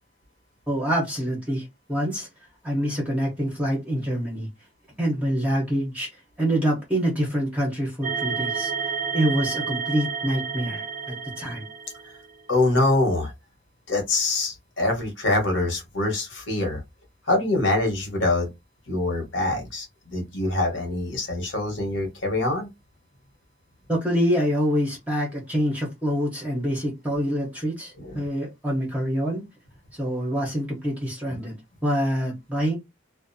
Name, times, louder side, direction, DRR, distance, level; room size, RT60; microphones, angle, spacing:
voice 1, 0.7-2.3 2.6-4.5 5.0-6.1 6.4-11.6 23.9-29.4 30.0-31.5 31.8-32.8, equal, 10° right, 0.7 m, -26 dB
sound 1, 8.0-12.3, right 6 dB, 40° right, 0.3 m, -30 dB
voice 2, 12.5-13.3 13.9-16.8 17.3-18.5 18.9-22.7 28.0-28.3, left 2 dB, 65° left, 1.1 m, -24 dB
2.5 x 2.1 x 2.5 m
head